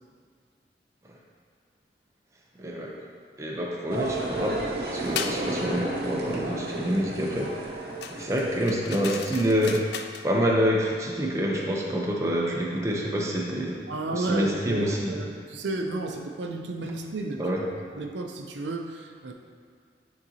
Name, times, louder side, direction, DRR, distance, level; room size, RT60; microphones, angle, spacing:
voice 1, 2.6-2.9 3.4-7.6 8.1-9.9 10.2-13.8 14.1-15.2 17.4-17.6, equal, 15° right, -2 dB, 0.6 m, -27 dB
sound 1, 3.9-9.0, right 1 dB, 60° right, 0.8 m, -33 dB
sound 2, 5.1-5.4 8.0-10.3, left 7 dB, 70° left, 0.3 m, -36 dB
voice 2, 13.9-17.4 17.9-19.3, right 2 dB, 85° right, 3 dB, 0.5 m, -32 dB
8.9 x 4.0 x 2.8 m, 2.1 s
head